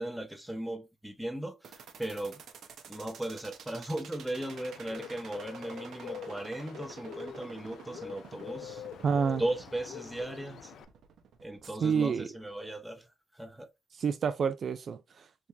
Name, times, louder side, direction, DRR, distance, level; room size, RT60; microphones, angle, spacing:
voice 1, 0.0-2.4 2.9-8.8 9.4-10.7 11.4-13.1 13.3-13.7, right 1 dB, 5° right, 0.7 m, -37 dB
sound 1, 1.6-11.7, right 7 dB, 70° right, 0.7 m, -49 dB
Bird, 4.3-10.8, left 8 dB, 70° left, 0.4 m, -45 dB
voice 2, 9.0-9.4 11.8-12.3 14.0-15.5, right 6 dB, 50° right, 0.3 m, -29 dB
3.5 x 3.1 x 2.7 m
cardioid pair, 90°, 0 cm